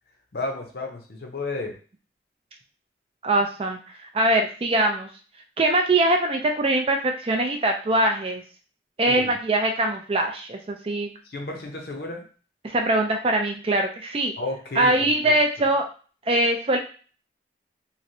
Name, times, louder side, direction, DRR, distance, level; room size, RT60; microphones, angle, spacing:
voice 1, 0.3-1.7 9.1-9.4 11.3-12.2 14.4-15.3, left 2 dB, 55° left, 2 dB, 0.7 m, -32 dB
voice 2, 3.2-5.1 5.6-8.4 9.0-11.1 12.6-14.3 14.8-15.9 16.3-16.8, right 1 dB, 30° right, 3 dB, 0.4 m, -22 dB
3.1 x 2.6 x 2.6 m, 0.38 s
head